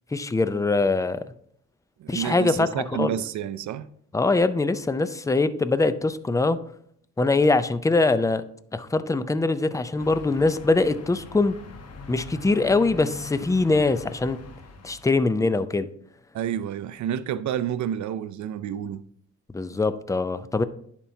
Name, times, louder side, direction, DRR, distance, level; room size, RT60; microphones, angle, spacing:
voice 1, 0.1-1.2 2.1-3.2 4.1-6.6 7.2-8.5 8.7-11.6 12.1-14.4 14.8-15.9 19.5-20.6, left 3 dB, 10° left, 0.4 m, -23 dB
voice 2, 2.0-3.9 16.3-19.0, right 9 dB, 70° right, 0.5 m, -29 dB
sound 1, 10.0-15.2, left 4 dB, 55° left, 1.0 m, -42 dB
11.0 x 4.5 x 2.7 m
cardioid pair, 70°, 30 cm